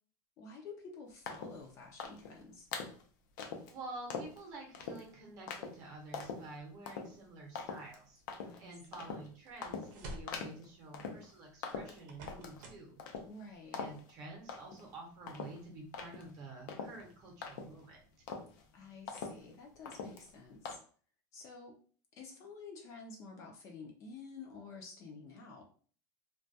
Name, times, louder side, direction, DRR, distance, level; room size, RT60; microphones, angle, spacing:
voice 1, 0.4-2.7 8.4-9.1 13.3-13.8 18.7-20.8 21.3-21.8 22.2-25.6, left 4 dB, 30° left, 1 dB, 0.4 m, -50 dB
sound 1, 1.3-1.6 2.0-2.3 2.7-3.0 3.4-3.7 4.1-4.4 4.7-5.1 5.5-5.8 6.1-6.5 6.9-7.1 7.6-8.0 8.3-8.6 8.9-9.3 9.6-9.9 10.3-10.7 10.9-11.3 11.6-12.6 13.0-13.5 13.7-14.1 14.5-14.9 15.3-17.9 18.3-18.6 19.1-19.6 19.9-20.3 20.7-20.8, left 5 dB, 85° left, 0.5 m, -43 dB
voice 2, 3.7-8.2 8.6-13.0 13.7-18.0, right 2 dB, 35° right, 0 dB, 0.7 m, -49 dB
sound 2, 8.8-9.0 9.5-10.4 11.7-12.9 13.1-13.2, right 1 dB, 70° right, 0.6 m, -49 dB
2.2 x 2.1 x 2.6 m, 0.43 s
supercardioid pair, 170°, 10 cm